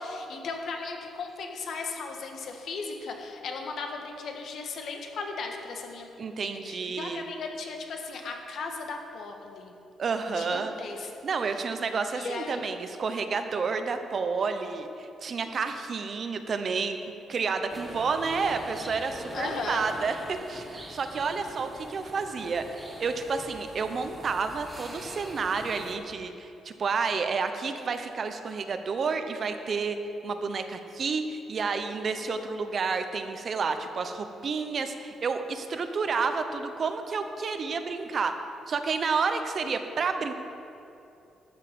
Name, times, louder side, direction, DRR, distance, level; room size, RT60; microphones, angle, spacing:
voice 1, 0.0-6.1 6.4-9.7 10.3-11.1 12.1-12.7 19.3-19.9, left 4 dB, 60° left, 3 dB, 1.5 m, -36 dB
voice 2, 6.2-7.2 10.0-10.7 11.2-17.0 17.3-38.3 38.7-40.3, right 5 dB, 45° right, 8 dB, 0.8 m, -30 dB
sound 1, 17.7-25.9, equal, 10° right, 2.2 m, -43 dB
12.5 x 7.3 x 6.1 m, 2.8 s
cardioid pair, 120°, 0 cm